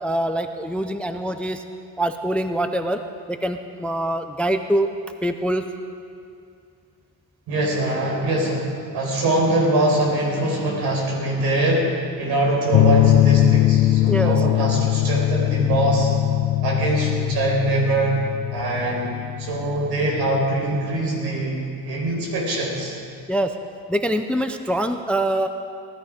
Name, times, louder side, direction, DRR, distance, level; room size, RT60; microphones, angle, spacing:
voice 1, 0.0-1.6 2.0-3.0 3.3-4.9 5.2-5.7 14.1-14.4 23.3-23.5 23.9-25.5, right 1 dB, 5° left, 8 dB, 0.4 m, -24 dB
voice 2, 7.5-16.1 16.6-18.2 18.5-21.6 21.8-22.9, right 2 dB, 75° right, -2 dB, 4.8 m, -23 dB
sound 1, 12.7-20.4, left 14 dB, 80° left, 1.1 m, -20 dB
18.5 x 13.0 x 5.1 m, 2.4 s
cardioid pair, 155°, 38 cm